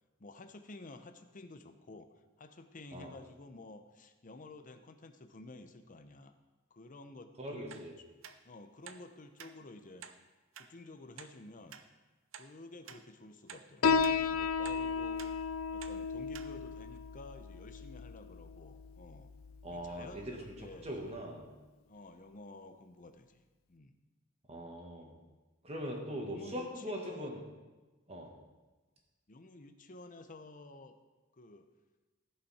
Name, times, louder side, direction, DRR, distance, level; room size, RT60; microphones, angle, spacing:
voice 1, 0.2-2.1 2.4-6.3 6.7-7.8 8.4-10.1 10.5-11.8 12.4-15.3 15.7-19.3 19.7-21.2 21.9-24.0 26.1-27.3 29.3-31.0 31.3-31.7, left 2 dB, 40° left, 8 dB, 0.7 m, -52 dB
voice 2, 7.4-7.9 19.6-21.5 24.5-25.1 25.6-27.4 28.1-28.3, equal, 30° right, 0 dB, 1.7 m, -41 dB
sound 1, 7.7-7.9 8.2-8.4 8.8-9.0 9.4-9.5 10.0-10.2 10.5-10.7 11.2-11.3 11.7-11.8 12.3-12.5 12.9-13.0 13.5-13.6 14.0-14.2 14.6-14.8 15.2-15.3 15.8-16.0 16.3-16.5 17.0-17.1, right 8 dB, 70° right, 0.6 m, -49 dB
Piano, 13.8-20.9, left 5 dB, 85° left, 0.5 m, -35 dB
15.5 x 5.6 x 4.2 m, 1.2 s
head